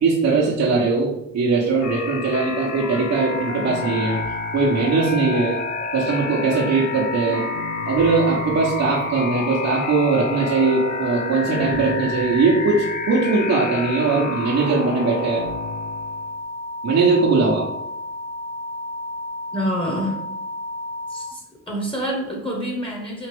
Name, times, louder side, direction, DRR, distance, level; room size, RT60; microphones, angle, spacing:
voice 1, 0.0-4.2 4.5-5.6 5.9-7.5 7.9-15.4 16.8-17.7, right 4 dB, 55° right, -4 dB, 1.0 m, -20 dB
sound 1, 1.8-16.4, left 4 dB, 60° left, 0.8 m, -31 dB
sound 2, 3.2-21.3, left 1 dB, 85° right, 0.5 m, -32 dB
voice 2, 19.5-20.2 21.1-23.3, equal, 15° left, -1 dB, 1.2 m, -27 dB
4.2 x 2.4 x 3.5 m, 0.87 s
supercardioid pair, 60°, 33 cm